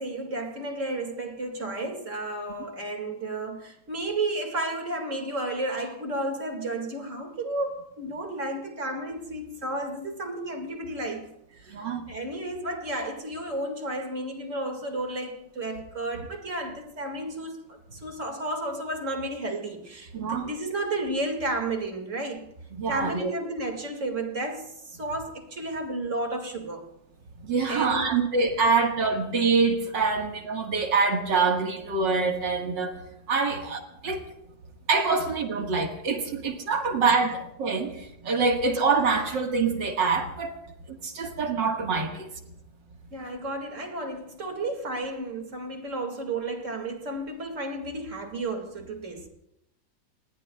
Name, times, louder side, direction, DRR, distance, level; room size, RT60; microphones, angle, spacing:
voice 1, 0.0-22.4 22.9-26.8 27.7-28.2 43.1-49.3, right 2 dB, 40° right, 2.4 m, -32 dB
voice 2, 11.7-12.0 20.1-20.5 22.7-23.3 27.4-33.0 33.3-34.2 34.9-40.6 40.9-42.3, right 4 dB, 65° right, 2.3 m, -25 dB
28.0 x 20.0 x 2.3 m
omnidirectional pair, 2.1 m